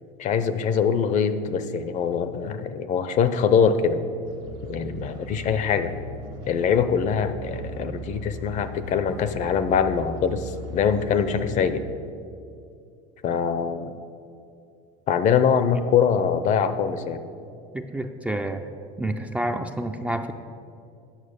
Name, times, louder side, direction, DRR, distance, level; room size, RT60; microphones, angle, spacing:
voice 1, 0.2-4.0 4.7-5.9 6.5-11.8 13.2-13.9 15.1-17.2, left 7 dB, 45° left, 11 dB, 0.6 m, -23 dB
sound 1, 4.2-11.7, right 1 dB, 80° right, 1.2 m, -38 dB
voice 2, 17.7-18.7 19.0-20.3, right 1 dB, 5° right, 5 dB, 0.4 m, -29 dB
8.9 x 6.4 x 6.6 m, 2.5 s
supercardioid pair, 115°, 18 cm